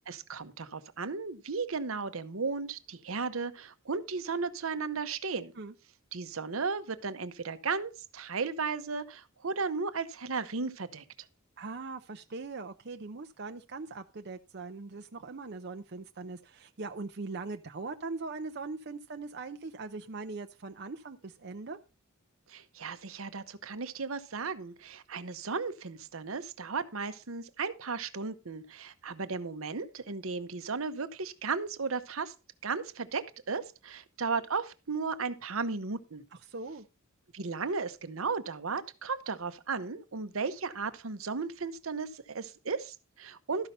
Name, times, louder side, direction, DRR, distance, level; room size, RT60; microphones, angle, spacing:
voice 1, 0.1-5.5 6.1-11.0 22.5-32.3 32.6-36.2 37.3-43.7, right 4 dB, 75° right, 0.9 m, -35 dB
voice 2, 11.6-21.8 36.5-36.9, right 3 dB, 55° right, 0.7 m, -41 dB
13.0 x 5.8 x 5.3 m
head